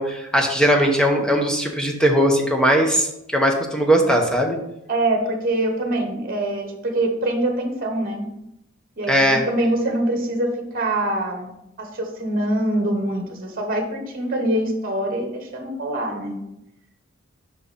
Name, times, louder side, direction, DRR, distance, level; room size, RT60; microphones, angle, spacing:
voice 1, 0.0-4.6 9.1-9.5, equal, 5° left, 2 dB, 1.0 m, -19 dB
voice 2, 4.9-8.3 9.0-11.5 11.8-16.4, right 1 dB, 45° right, 3 dB, 1.1 m, -24 dB
5.7 x 4.6 x 5.2 m, 0.83 s
head